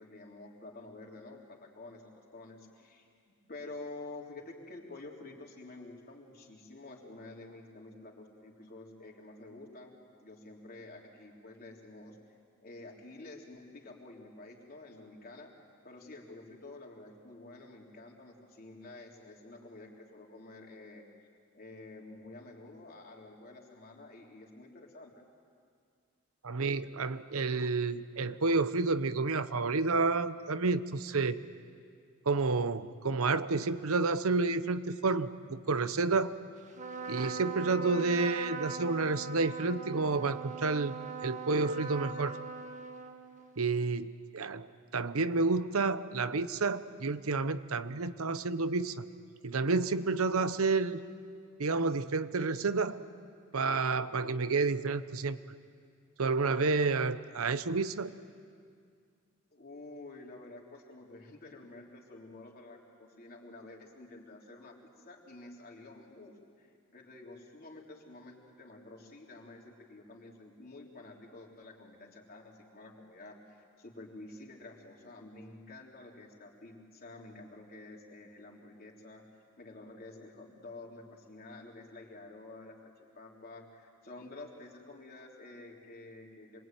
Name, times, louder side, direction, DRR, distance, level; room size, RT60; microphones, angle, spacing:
voice 1, 0.0-3.1 3.5-12.2 12.6-15.5 15.8-21.0 21.5-25.2 59.5-79.2 79.6-86.6, left 2 dB, 45° left, -1 dB, 3.7 m, -49 dB
voice 2, 26.4-31.4 32.3-36.4 37.1-42.4 43.6-44.7 44.9-49.0 49.4-51.0 51.6-53.0 53.5-55.4 56.2-58.1, right 3 dB, 80° right, 13 dB, 0.9 m, -30 dB
Trumpet, 36.7-43.6, right 4 dB, 35° right, 1.5 m, -41 dB
27.0 x 22.5 x 9.2 m, 2.2 s
head